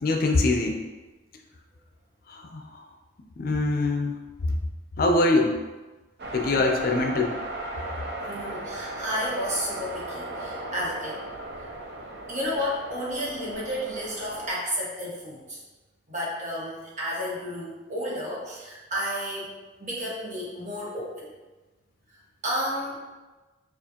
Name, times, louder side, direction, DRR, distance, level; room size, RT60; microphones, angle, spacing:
voice 1, 0.0-0.8 2.3-2.6 3.4-4.1 5.0-5.6 6.3-7.3, left 2 dB, 50° left, 3 dB, 0.5 m, -23 dB
sound 1, 6.2-14.5, right 2 dB, 60° right, 0.6 m, -36 dB
voice 2, 8.3-11.2 11.6-11.7 12.3-15.6 16.1-19.5 19.8-21.3 22.4-23.0, equal, 40° right, -5 dB, 1.3 m, -32 dB
6.7 x 2.5 x 2.8 m, 1.2 s
head